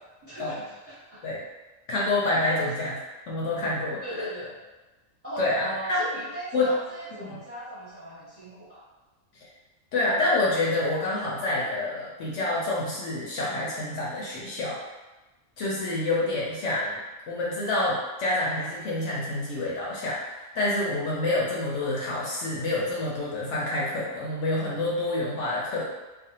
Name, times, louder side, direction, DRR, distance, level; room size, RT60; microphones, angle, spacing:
voice 1, 0.2-1.2 2.5-2.7 4.0-4.6 5.2-8.8, right 1 dB, 10° right, -11 dB, 1.0 m, -38 dB
voice 2, 1.9-2.9 3.3-4.2 5.4-6.0 6.5-6.7 7.1-7.4 9.9-14.8 15.6-17.0 17.3-25.9, left 2 dB, 70° left, -5 dB, 0.9 m, -27 dB
2.5 x 2.3 x 2.8 m, 1.1 s
omnidirectional pair, 1.4 m